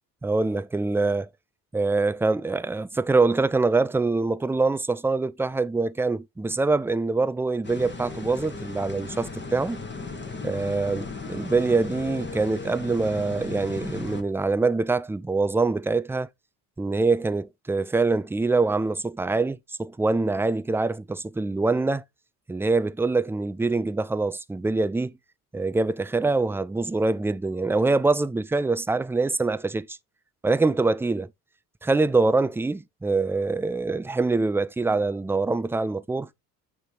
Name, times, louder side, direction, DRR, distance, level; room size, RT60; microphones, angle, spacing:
voice 1, 0.2-1.3 1.7-9.8 10.4-16.3 16.8-22.0 22.5-25.1 25.5-30.0 30.4-31.3 31.8-36.3, right 3 dB, 5° right, 0.4 m, -24 dB
sound 1, 7.6-14.2, left 4 dB, 20° left, 2.0 m, -36 dB
9.0 x 3.3 x 3.9 m
hypercardioid pair, 55°, 47 cm